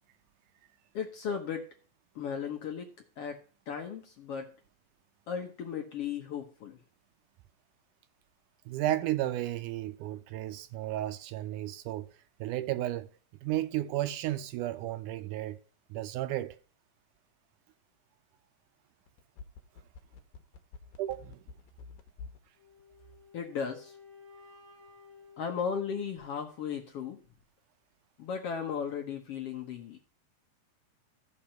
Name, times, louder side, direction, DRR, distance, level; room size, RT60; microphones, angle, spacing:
voice 1, 0.9-1.7 2.1-4.5 5.3-6.8 23.3-24.0 25.4-27.2 28.2-30.0, left 7 dB, 60° left, 1.6 m, -36 dB
voice 2, 8.7-12.1 12.4-13.1 13.4-15.6 15.9-16.6 21.0-21.4, right 14 dB, 80° right, 2.0 m, -33 dB
sound 1, 19.1-22.5 22.8-22.9, left 5 dB, 85° left, 2.7 m, -47 dB
sound 2, 22.6-26.6, left 5 dB, 10° left, 2.0 m, -56 dB
14.0 x 4.8 x 5.7 m
omnidirectional pair, 3.8 m